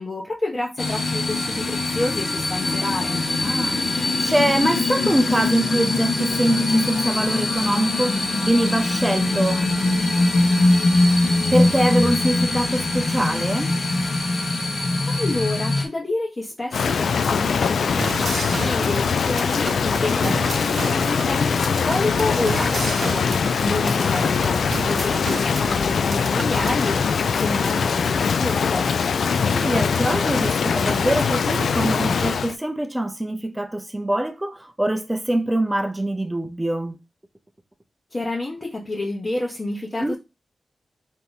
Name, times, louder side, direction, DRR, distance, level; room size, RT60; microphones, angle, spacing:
voice 1, 0.0-3.2 15.0-28.9 38.1-40.2, left 2 dB, 30° left, 1.0 m, -29 dB
sound 1, 0.8-15.9, left 2 dB, 60° left, 1.0 m, -22 dB
voice 2, 3.4-9.7 11.1-11.2 11.5-13.8 29.5-37.0 40.0-40.1, right 1 dB, 10° right, 0.5 m, -24 dB
Rain, 16.7-32.6, left 6 dB, 85° left, 0.3 m, -22 dB
sound 2, 18.0-26.9, right 4 dB, 65° right, 0.5 m, -33 dB
3.4 x 2.8 x 4.0 m
wide cardioid pair, 95°, 0 cm